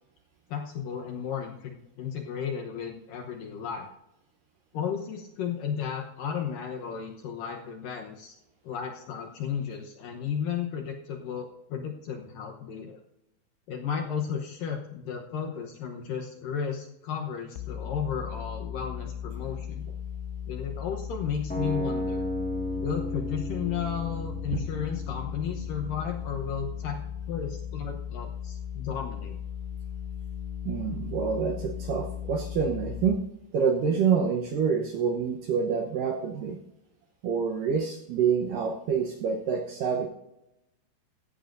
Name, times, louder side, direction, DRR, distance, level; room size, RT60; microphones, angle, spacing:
voice 1, 0.5-3.9 4.7-8.3 8.6-13.0 13.7-19.8 20.5-22.2 22.8-27.0 27.3-29.4, left 7 dB, 70° left, 2 dB, 2.2 m, -34 dB
sound 1, 17.6-33.2, left 9 dB, 85° left, 2.2 m, -37 dB
sound 2, 21.5-27.5, equal, 5° left, 0.8 m, -36 dB
voice 2, 30.6-33.2 33.5-36.6 37.2-40.1, right 6 dB, 75° right, 2 dB, 2.1 m, -27 dB
15.5 x 14.5 x 2.6 m, 0.87 s
omnidirectional pair, 4.9 m